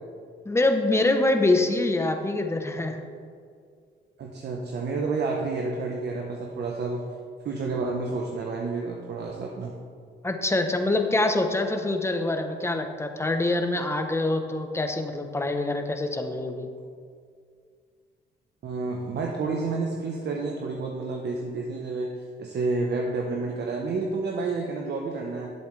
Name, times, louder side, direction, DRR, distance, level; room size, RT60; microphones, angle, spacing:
voice 1, 0.5-3.0 10.2-16.7, left 2 dB, 15° left, 5 dB, 0.9 m, -25 dB
voice 2, 4.2-7.0 7.4-9.7 18.6-22.1 22.4-25.5, right 3 dB, 55° right, 0 dB, 1.0 m, -30 dB
11.5 x 7.9 x 3.3 m, 2.1 s
cardioid pair, 90°, 20 cm